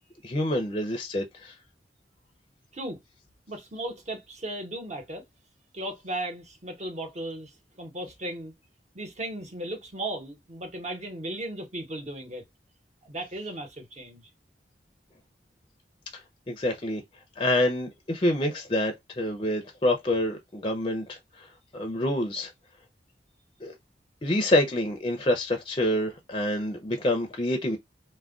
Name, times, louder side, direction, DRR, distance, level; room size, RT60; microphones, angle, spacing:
voice 1, 0.2-1.5 16.5-17.0 17.4-21.2 21.7-22.5 23.6-23.7 24.2-27.8, left 1 dB, 30° left, 0.5 m, -27 dB
voice 2, 3.5-5.3 5.7-8.5 8.9-12.4 13.0-14.3, right 1 dB, 40° right, 0.9 m, -36 dB
2.3 x 2.1 x 3.5 m
head